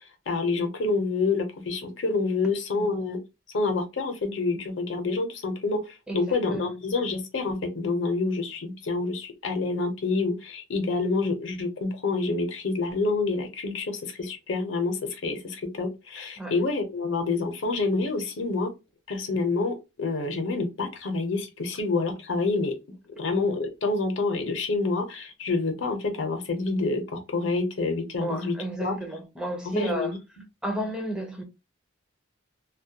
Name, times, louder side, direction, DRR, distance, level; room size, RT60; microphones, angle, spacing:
voice 1, 0.3-3.2 3.5-18.7 19.1-22.8 23.2-28.9 29.6-30.2, left 3 dB, 70° left, 0.6 m, -27 dB
voice 2, 6.1-6.8 16.4-16.6 28.2-30.1 30.6-31.4, right 1 dB, 5° right, 0.4 m, -33 dB
2.2 x 2.1 x 2.7 m
head